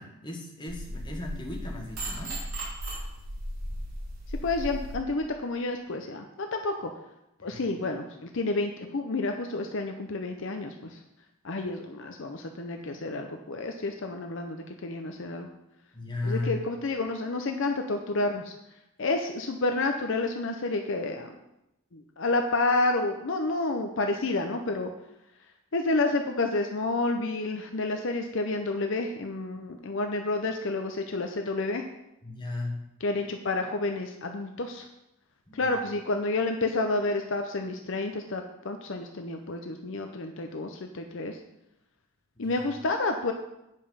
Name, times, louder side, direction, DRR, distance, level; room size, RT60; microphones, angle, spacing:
voice 1, 0.0-2.4 7.4-7.6 15.9-16.7 32.2-32.9 35.5-35.8 42.4-42.7, left 2 dB, 20° left, -1 dB, 1.4 m, -36 dB
sound 1, 0.7-5.0, right 1 dB, 60° right, 3.1 m, -36 dB
voice 2, 4.4-6.9 7.4-11.0 11.4-15.5 16.2-18.5 19.0-21.3 21.9-24.9 25.7-31.8 33.0-34.9 35.5-41.4 42.4-43.3, left 2 dB, 55° left, 4 dB, 0.6 m, -30 dB
9.1 x 5.4 x 5.6 m, 0.88 s
head